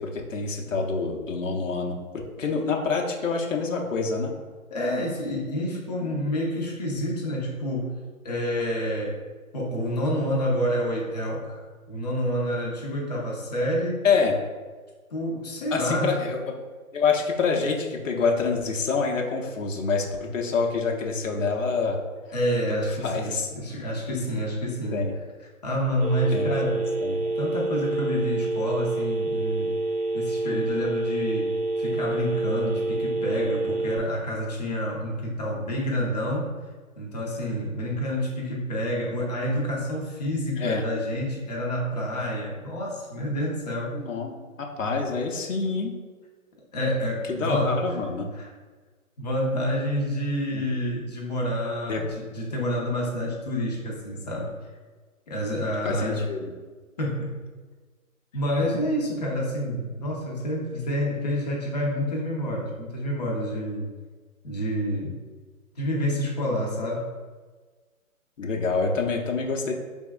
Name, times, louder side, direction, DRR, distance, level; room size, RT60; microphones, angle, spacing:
voice 1, 0.0-2.0 2.4-4.3 14.0-14.3 15.7-16.4 16.9-22.0 22.7-23.5 24.9-25.1 26.3-26.5 26.8-27.2 40.6-40.8 43.9-45.9 47.3-48.3 50.5-50.6 51.9-52.0 55.8-56.5 68.4-69.7, left 4 dB, 60° left, 1 dB, 0.8 m, -26 dB
voice 2, 4.7-7.9 8.2-9.2 9.5-11.6 11.9-14.0 15.1-16.1 22.3-25.0 25.6-26.8 27.1-29.7 30.1-36.5 37.0-44.0 46.7-47.8 48.3-48.5 49.2-54.5 55.3-56.2 57.0-57.4 58.3-63.9 64.4-65.1 65.8-67.1, equal, 30° left, -3 dB, 0.7 m, -28 dB
Telephone, 26.0-34.0, right 2 dB, 30° right, 0.6 m, -27 dB
5.3 x 3.5 x 2.3 m, 1.4 s
figure-of-eight pair, 140°, 43 cm